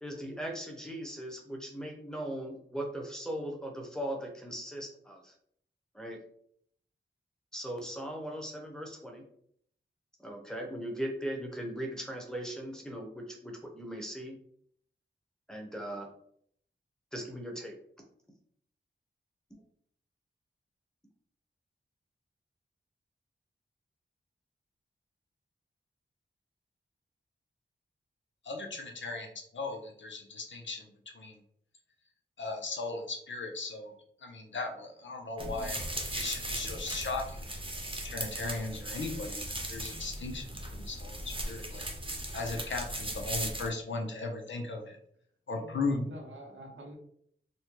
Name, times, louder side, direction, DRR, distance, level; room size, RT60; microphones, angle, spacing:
voice 1, 0.0-5.3 5.9-6.2 7.5-9.2 10.2-14.4 15.5-16.1 17.1-17.8, right 1 dB, 5° left, 1 dB, 1.0 m, -39 dB
voice 2, 28.4-29.3 29.5-30.9 31.1-31.4 32.4-33.9 34.2-35.8 36.1-37.4 38.0-41.8 42.3-45.0 45.5-46.1 46.6-46.7, left 3 dB, 75° left, 2 dB, 0.7 m, -37 dB
sound 1, 35.4-43.7, right 1 dB, 25° right, 0.8 m, -38 dB
voice 3, 45.6-46.9, equal, 75° right, 0 dB, 0.9 m, -47 dB
4.1 x 2.2 x 3.0 m, 0.66 s
wide cardioid pair, 60°, 20 cm